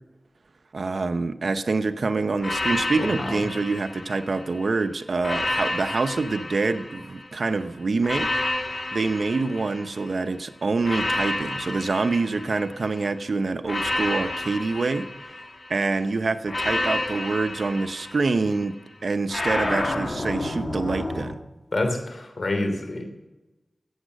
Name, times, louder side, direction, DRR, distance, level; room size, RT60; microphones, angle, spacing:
voice 1, 0.7-8.3 8.9-15.1 15.7-18.7 19.0-21.3, right 3 dB, 75° right, 10 dB, 0.8 m, -26 dB
sound 1, 2.4-4.6 5.2-7.4 8.0-10.2 10.8-13.0 13.6-15.8 16.5-18.6 19.3-21.3, left 2 dB, 55° left, 2.3 m, -30 dB
voice 2, 3.0-3.4 21.7-23.1, left 2 dB, 70° left, 5 dB, 3.1 m, -27 dB
14.5 x 8.9 x 6.5 m, 1.1 s
wide cardioid pair, 60°, 0 cm